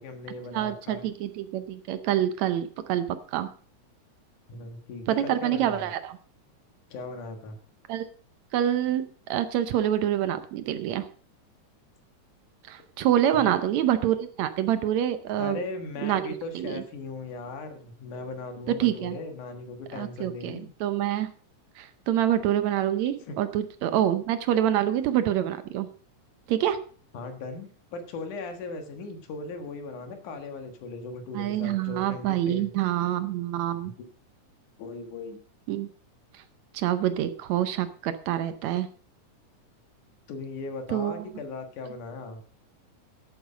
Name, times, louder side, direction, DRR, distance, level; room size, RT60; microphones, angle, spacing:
voice 1, 0.0-1.1 4.5-5.9 6.9-7.6 13.3-13.5 15.4-20.7 23.2-23.4 27.1-32.7 34.8-35.4 40.3-42.4, left 3 dB, 80° left, 6 dB, 3.2 m, -38 dB
voice 2, 0.5-3.5 5.1-6.2 7.9-8.1 8.5-11.1 12.7-15.6 16.0-16.8 18.7-19.2 19.9-21.3 21.8-25.9 26.5-26.8 31.3-33.9 35.7-35.9 36.3-36.4 36.7-38.9 40.9-41.3, right 11 dB, 75° right, 12 dB, 1.9 m, -26 dB
11.5 x 8.7 x 5.1 m, 0.43 s
omnidirectional pair, 3.5 m